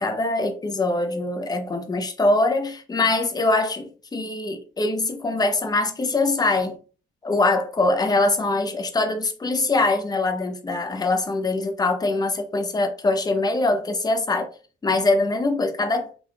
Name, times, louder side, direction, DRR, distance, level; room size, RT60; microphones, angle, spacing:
voice 1, 0.0-6.8 7.2-14.5 14.8-16.1, left 2 dB, 20° left, 0.6 m, -23 dB
3.8 x 2.9 x 2.3 m
cardioid pair, 90°, 20 cm